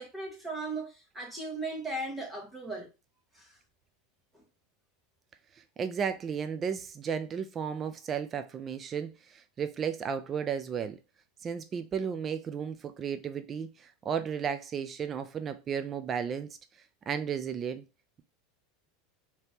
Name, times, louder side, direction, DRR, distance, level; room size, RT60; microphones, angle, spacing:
voice 1, 0.0-2.9 3.3-3.5 4.3-4.4, right 2 dB, 10° right, 1.3 m, -37 dB
voice 2, 5.8-11.0 11.4-16.6 17.1-17.8, right 7 dB, 25° right, 0.3 m, -34 dB
3.4 x 2.8 x 2.8 m
supercardioid pair, 135°, 0 cm